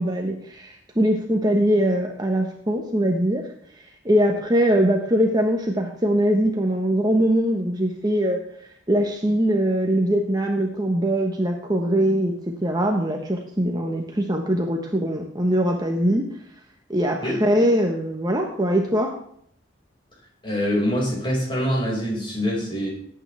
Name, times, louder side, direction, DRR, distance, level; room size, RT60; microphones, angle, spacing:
voice 1, 0.0-3.4 3.7-8.4 8.9-12.3 12.6-16.2 16.9-19.1, equal, 20° right, 2 dB, 1.2 m, -22 dB
voice 2, 20.4-22.9, equal, 25° left, -3 dB, 5.4 m, -24 dB
17.5 x 9.1 x 3.4 m, 0.66 s
head